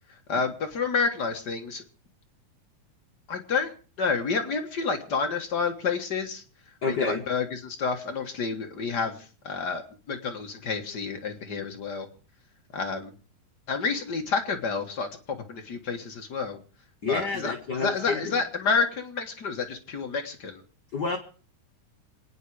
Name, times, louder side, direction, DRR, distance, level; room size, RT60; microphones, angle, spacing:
voice 1, 0.3-1.8 3.3-3.7 4.0-6.4 6.9-12.1 12.7-13.1 13.7-16.6 17.1-20.6, left 5 dB, 45° left, 4 dB, 1.4 m, -29 dB
voice 2, 6.8-7.2 17.0-18.4 20.9-21.2, left 4 dB, 90° left, 4 dB, 0.9 m, -29 dB
27.0 x 9.3 x 4.8 m, 0.39 s
omnidirectional pair, 3.8 m